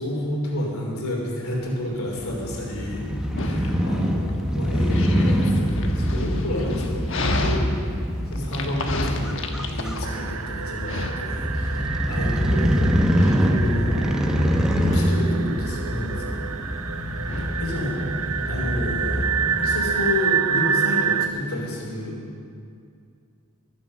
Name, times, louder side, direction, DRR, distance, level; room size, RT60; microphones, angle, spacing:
voice 1, 0.0-3.1 3.4-7.7 8.3-12.9 13.4-14.1 14.8-16.5 17.6-18.0 18.4-19.2 19.6-22.1, left 1 dB, 75° left, -2 dB, 3.1 m, -30 dB
Dog, 1.5-20.7, left 2 dB, 60° left, 1.2 m, -34 dB
Crow / Motorcycle, 2.2-20.1, equal, 5° right, 0.8 m, -25 dB
sound 1, 10.0-21.3, right 7 dB, 80° right, 0.7 m, -28 dB
21.0 x 7.5 x 6.4 m, 2.3 s
head